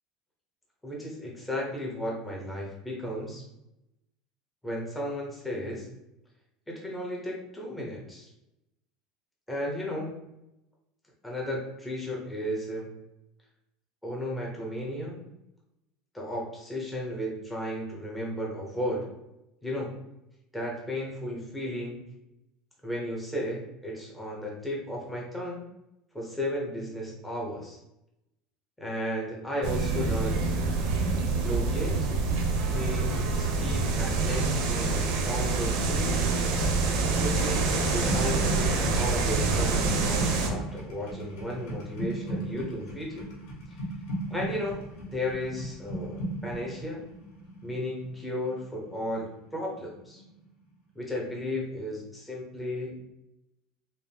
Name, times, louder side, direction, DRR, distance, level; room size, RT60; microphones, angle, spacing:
voice 1, 0.8-3.4 4.6-5.9 6.7-8.3 9.5-10.1 11.2-12.9 14.0-15.2 16.1-19.1 19.6-19.9 20.5-22.0 22.8-25.6 26.1-27.8 28.8-30.8 31.3-32.1 32.7-36.2 37.1-43.3 44.3-47.0 47.6-50.2 50.9-52.9, left 1 dB, 5° left, -3 dB, 0.8 m, -34 dB
sound 1, 29.6-40.5, right 3 dB, 65° right, 0.8 m, -26 dB
sound 2, 37.9-49.7 50.0-50.4, right 1 dB, 70° left, 1.3 m, -37 dB
5.1 x 2.0 x 3.4 m, 0.88 s
cardioid pair, 155°, 0 cm